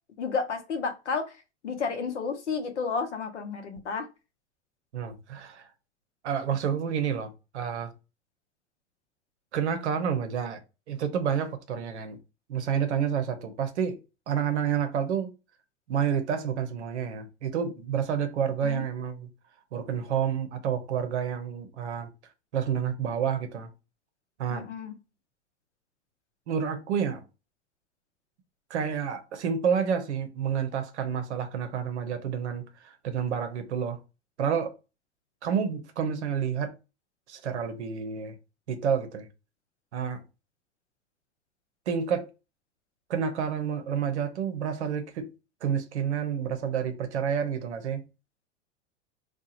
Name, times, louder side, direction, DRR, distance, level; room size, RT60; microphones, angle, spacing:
voice 1, 0.2-1.4 1.6-4.1 18.6-18.8 24.5-24.9, left 5 dB, 80° left, 0.7 m, -31 dB
voice 2, 4.9-5.7 6.2-7.9 9.5-10.6 10.9-12.2 12.5-14.0 14.3-15.3 15.9-19.3 19.7-22.1 22.5-23.7 24.4-24.7 26.5-27.2 28.7-34.0 34.4-34.7 35.4-36.7 37.3-38.4 38.7-39.3 39.9-40.2 41.9-42.3 43.1-45.3 45.6-48.0, right 7 dB, 75° right, 0.7 m, -29 dB
2.8 x 2.3 x 2.4 m
hypercardioid pair, 90°, 34 cm